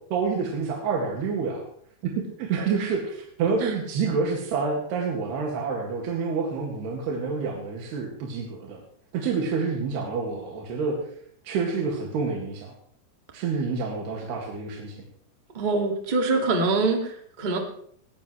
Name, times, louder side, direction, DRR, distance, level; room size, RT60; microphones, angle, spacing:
voice 1, 0.1-1.6 2.0-2.1 2.4-8.8 9.1-11.0 11.4-12.7 13.3-14.9, right 5 dB, 75° right, -1 dB, 4.1 m, -28 dB
voice 2, 15.5-17.6, right 3 dB, 20° right, 2 dB, 1.2 m, -24 dB
20.5 x 15.0 x 3.2 m, 0.63 s
omnidirectional pair, 4.8 m